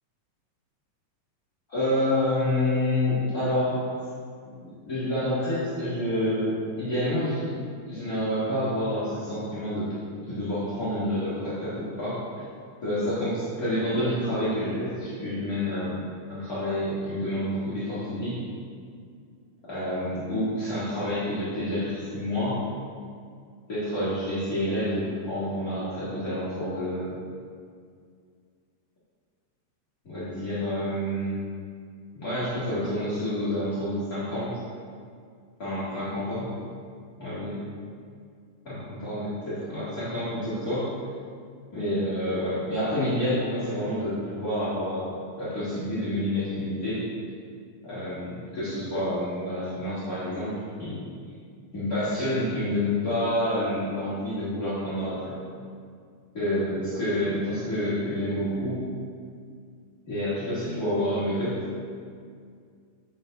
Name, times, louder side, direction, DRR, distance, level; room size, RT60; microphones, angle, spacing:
voice 1, 1.7-3.8 4.4-7.5 7.9-9.9 10.2-12.2 12.8-16.0 16.3-18.4 19.7-22.6 23.7-27.1 30.0-31.3 32.1-34.5 35.6-36.5 37.2-37.6 38.6-40.9 41.7-47.0 47.8-51.0 51.7-55.4 56.3-58.8 60.0-61.6, left 1 dB, 55° left, -13 dB, 1.0 m, -28 dB
6.6 x 5.9 x 3.8 m, 2.2 s
omnidirectional pair, 4.3 m